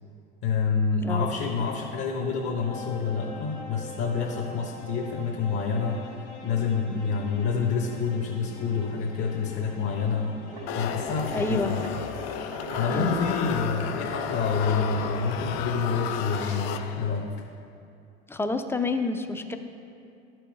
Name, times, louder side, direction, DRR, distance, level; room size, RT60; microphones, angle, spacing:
voice 1, 0.4-11.9 12.4-17.3, left 5 dB, 45° left, 0 dB, 1.0 m, -28 dB
voice 2, 1.0-1.4 11.3-11.7 12.9-13.5 18.3-19.6, left 3 dB, 5° left, 7 dB, 0.4 m, -29 dB
sound 1, 1.4-14.3, left 3 dB, 80° left, 1.1 m, -45 dB
sound 2, 10.5-16.8, right 1 dB, 85° right, 1.5 m, -40 dB
sound 3, 10.7-17.3, left 9 dB, 60° left, 0.6 m, -33 dB
13.0 x 4.5 x 3.2 m, 2.6 s
hypercardioid pair, 70°, 35 cm